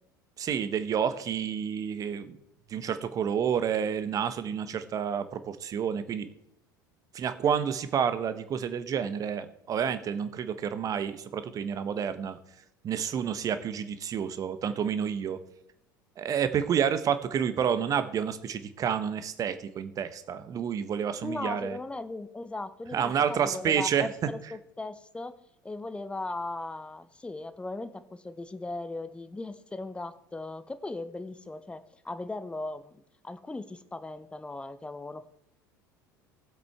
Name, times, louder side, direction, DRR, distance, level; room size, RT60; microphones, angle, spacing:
voice 1, 0.4-2.4 2.7-6.3 7.1-12.4 12.8-15.4 16.2-21.8 22.9-24.1, right 8 dB, 35° right, 12 dB, 1.0 m, -29 dB
voice 2, 21.2-25.3 25.6-35.3, left 2 dB, 10° left, 12 dB, 0.8 m, -38 dB
18.5 x 7.9 x 3.5 m, 0.77 s
figure-of-eight pair, 70°, 11 cm